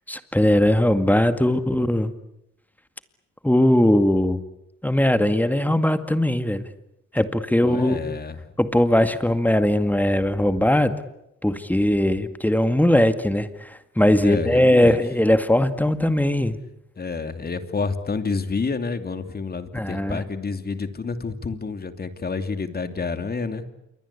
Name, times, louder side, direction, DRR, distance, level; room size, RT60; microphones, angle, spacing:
voice 1, 0.1-2.1 3.4-4.4 4.8-6.6 7.1-8.0 8.6-10.9 11.4-16.6 19.7-20.2, left 1 dB, 5° left, 10 dB, 2.1 m, -20 dB
voice 2, 7.6-8.4 14.2-15.0 17.0-23.7, left 4 dB, 30° left, 9 dB, 2.8 m, -29 dB
28.0 x 23.5 x 8.4 m, 0.81 s
cardioid pair, 90°, 30 cm